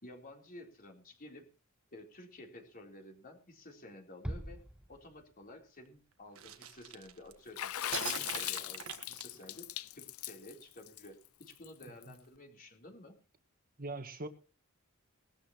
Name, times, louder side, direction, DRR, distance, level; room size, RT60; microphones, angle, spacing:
voice 1, 0.0-1.5 1.9-4.6 4.9-7.7 8.0-9.7 9.9-13.1, left 1 dB, 45° left, 2 dB, 3.7 m, -52 dB
Bass drum, 4.2-5.7, equal, 5° right, 0.6 m, -43 dB
sound 1, 6.4-7.5 7.9-9.8, right 7 dB, 75° right, 1.6 m, -42 dB
Water / Splash splatter, 7.6-12.0, left 13 dB, 85° left, 0.6 m, -39 dB
voice 2, 11.8-12.2 13.8-14.3, right 2 dB, 45° right, 8 dB, 1.7 m, -42 dB
20.0 x 13.0 x 3.1 m, 0.33 s
head